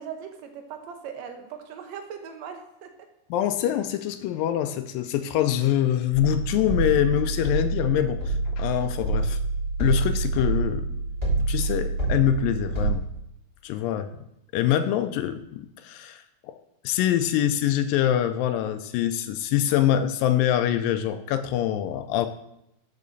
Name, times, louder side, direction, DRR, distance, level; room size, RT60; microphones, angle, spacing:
voice 1, 0.0-2.9 13.8-14.1, right 7 dB, 70° right, 5 dB, 1.7 m, -39 dB
voice 2, 3.3-9.4 9.8-10.9 11.5-13.1 13.6-14.1 14.5-16.6 16.8-22.3, left 11 dB, 80° left, 10 dB, 2.1 m, -24 dB
sound 1, 6.1-12.9, right 2 dB, 15° right, 1.9 m, -27 dB
12.5 x 5.5 x 4.0 m, 0.82 s
omnidirectional pair, 4.3 m